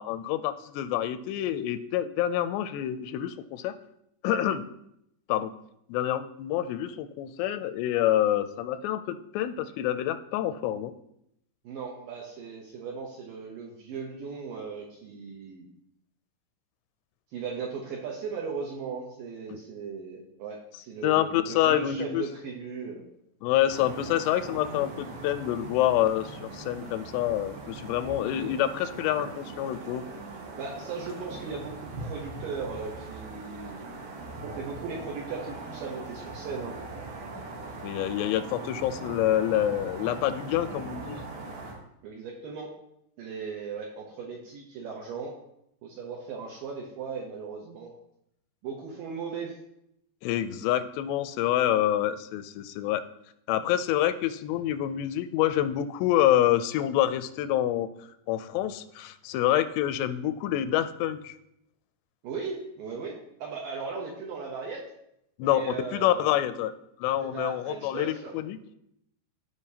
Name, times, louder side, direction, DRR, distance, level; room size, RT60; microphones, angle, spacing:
voice 1, 0.0-3.7 4.2-4.6 5.3-5.5 5.9-10.9 19.5-19.6 21.0-22.2 23.4-30.0 37.3-37.4 37.8-41.2 50.2-53.0 53.5-57.9 58.3-61.3 65.4-66.7 67.0-68.6, left 12 dB, 85° left, 11 dB, 2.6 m, -27 dB
voice 2, 11.6-15.7 17.3-23.1 28.2-28.5 30.6-33.9 34.6-36.8 42.0-42.7 43.2-45.3 45.8-47.9 48.6-49.6 62.2-64.8 65.4-66.6 67.2-68.4, right 5 dB, 75° right, -1 dB, 2.1 m, -37 dB
sound 1, 23.7-41.7, right 3 dB, 90° right, 3.5 m, -40 dB
14.5 x 5.1 x 2.8 m, 0.78 s
omnidirectional pair, 4.9 m